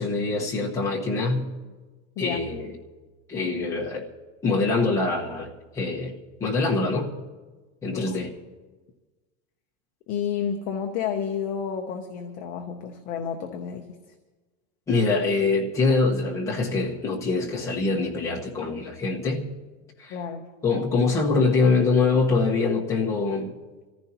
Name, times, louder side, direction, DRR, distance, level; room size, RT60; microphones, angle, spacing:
voice 1, 0.0-1.5 2.2-2.7 3.3-4.1 4.4-6.1 6.4-7.1 7.8-8.3 14.9-19.5 20.0-20.1 20.6-23.5, left 3 dB, 10° left, -3 dB, 1.2 m, -24 dB
voice 2, 10.1-13.8 20.1-20.5, left 7 dB, 25° left, 3 dB, 0.7 m, -30 dB
27.0 x 14.5 x 2.9 m, 1.3 s
supercardioid pair, 180°, 36 cm